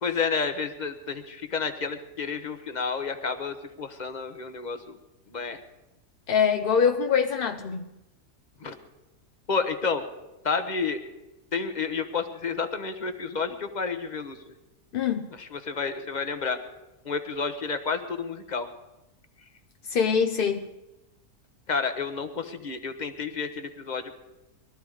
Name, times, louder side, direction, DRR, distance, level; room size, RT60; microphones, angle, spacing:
voice 1, 0.0-5.0 5.3-5.6 8.6-8.7 9.5-10.0 10.4-11.0 11.5-14.4 15.3-16.6 17.0-18.7 21.7-24.1, left 5 dB, 30° left, 8 dB, 1.1 m, -30 dB
voice 2, 6.3-7.9 14.9-15.3 19.9-20.7, left 7 dB, 60° left, 6 dB, 0.6 m, -24 dB
20.5 x 13.5 x 4.9 m, 0.98 s
omnidirectional pair, 1.8 m